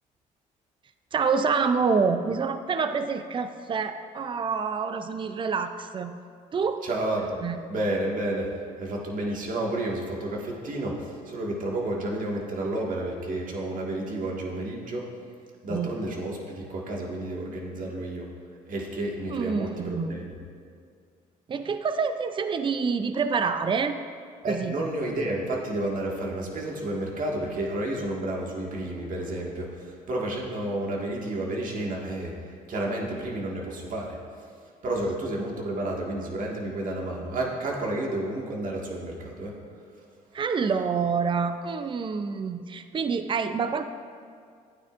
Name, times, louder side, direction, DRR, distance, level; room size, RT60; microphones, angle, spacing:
voice 1, 1.1-6.1 6.5-6.9 7.4-7.6 15.7-16.0 19.3-20.1 21.5-24.0 24.5-24.8 40.3-43.8, right 5 dB, 30° right, 9 dB, 0.5 m, -27 dB
voice 2, 6.8-7.4 7.7-8.5 8.8-15.0 15.6-18.2 18.7-20.2 24.4-32.3 32.7-34.2 34.8-39.5, right 1 dB, 55° right, -2 dB, 1.8 m, -31 dB
12.0 x 9.1 x 2.5 m, 2.2 s
supercardioid pair, 75°, 16 cm